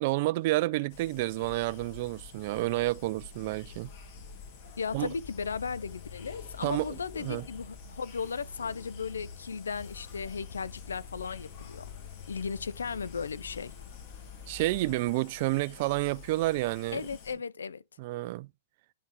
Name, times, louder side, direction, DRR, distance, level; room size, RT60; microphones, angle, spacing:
voice 1, 0.0-3.9 4.9-5.1 6.6-7.4 14.5-17.0 18.0-18.5, right 19 dB, 55° right, 0.3 m, -30 dB
sound 1, 0.9-17.3, left 6 dB, 50° left, 1.7 m, -50 dB
sound 2, 1.4-14.8, left 6 dB, 35° left, 2.7 m, -48 dB
voice 2, 4.8-11.9 12.3-13.7 16.9-17.8, left 5 dB, 90° left, 0.4 m, -36 dB
11.0 x 3.9 x 2.8 m
hypercardioid pair, 120°, 0 cm